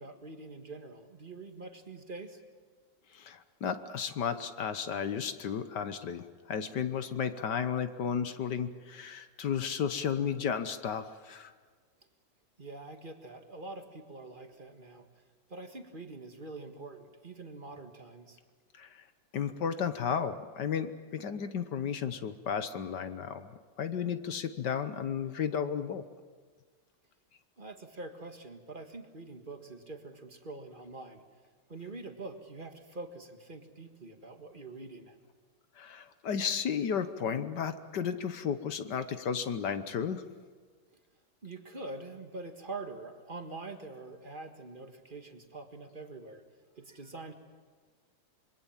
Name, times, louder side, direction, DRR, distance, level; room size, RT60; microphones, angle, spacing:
voice 1, 0.0-2.4 12.6-15.1 15.5-18.4 27.6-31.2 31.7-35.2 41.4-46.4 46.7-47.3, right 3 dB, 25° right, 6 dB, 1.6 m, -45 dB
voice 2, 3.1-11.5 18.8-18.9 19.3-23.5 23.8-26.0 35.8-40.2, left 7 dB, 55° left, 11 dB, 1.5 m, -33 dB
26.0 x 23.0 x 7.4 m, 1.5 s
omnidirectional pair, 2.4 m